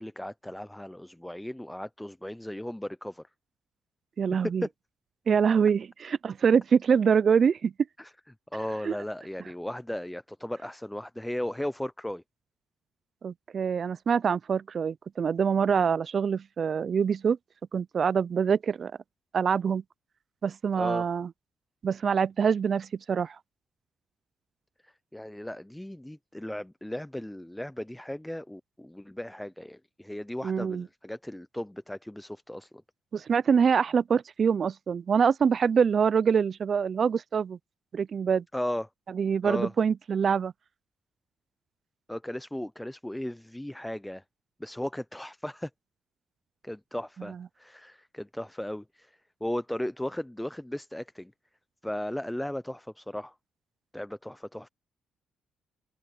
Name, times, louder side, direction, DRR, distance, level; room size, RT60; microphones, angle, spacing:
voice 1, 0.0-3.2 4.6-4.7 8.0-8.1 8.5-12.2 20.8-21.1 24.8-32.8 38.5-38.9 39.4-39.7 42.1-44.2 44.6-45.7 46.6-51.3 51.8-53.3 53.9-54.7, left 1 dB, 5° left, 0.5 m, -36 dB
voice 2, 4.2-4.6 5.3-7.7 8.8-9.0 13.2-17.4 17.7-18.9 19.3-19.8 20.4-21.3 21.8-23.4 30.4-30.9 33.1-37.6 37.9-38.4 39.1-40.5, right 6 dB, 50° right, 0.3 m, -25 dB
cardioid pair, 90°, 0 cm